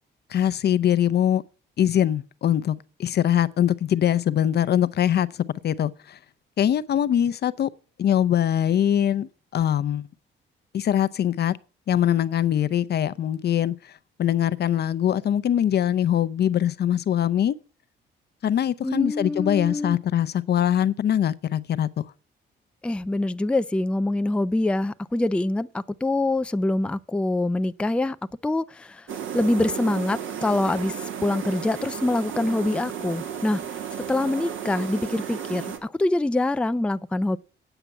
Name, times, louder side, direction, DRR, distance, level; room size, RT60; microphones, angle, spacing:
voice 1, 0.3-1.4 1.8-5.3 5.6-6.2 6.6-7.7 8.0-10.1 10.7-11.6 11.9-13.9 14.2-17.6 18.4-22.1, left 10 dB, 55° left, 0.6 m, -22 dB
voice 2, 18.8-20.0 22.8-28.2 28.4-29.1 29.3-30.9 31.2-33.6 34.1-37.4, left 2 dB, 5° left, 0.4 m, -25 dB
sound 1, 29.1-35.8, right 8 dB, 75° right, 1.8 m, -33 dB
9.0 x 5.8 x 8.2 m
cardioid pair, 90°, 20 cm